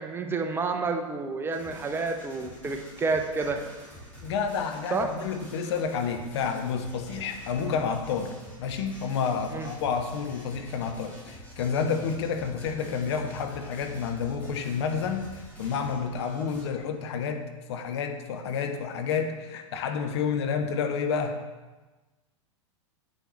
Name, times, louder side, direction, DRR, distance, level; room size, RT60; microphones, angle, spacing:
voice 1, 0.0-3.6 4.9-5.1 9.5-9.7, right 4 dB, 15° right, 4 dB, 0.7 m, -29 dB
sound 1, 1.5-16.7, equal, 10° left, 2.2 m, -47 dB
voice 2, 4.2-17.4 17.7-21.4, left 6 dB, 55° left, 6 dB, 0.8 m, -30 dB
7.5 x 6.7 x 3.1 m, 1.2 s
figure-of-eight pair, 95°, 16 cm